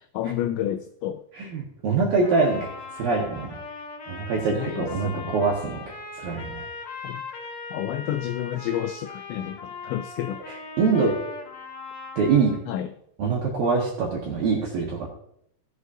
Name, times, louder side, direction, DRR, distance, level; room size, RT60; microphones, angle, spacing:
voice 1, 0.1-1.2 4.5-5.3 7.0-7.2 7.7-10.4 12.7-12.9, left 11 dB, 90° left, 9 dB, 2.5 m, -30 dB
voice 2, 1.3-2.7 3.0-3.6 4.1-5.8 6.1-6.6 10.5-11.1 12.2-12.5 13.2-15.1, right 4 dB, 65° right, -3 dB, 2.6 m, -24 dB
Trumpet, 2.2-12.6, left 4 dB, 70° left, 1.7 m, -39 dB
15.5 x 8.1 x 2.7 m, 0.72 s
omnidirectional pair, 5.7 m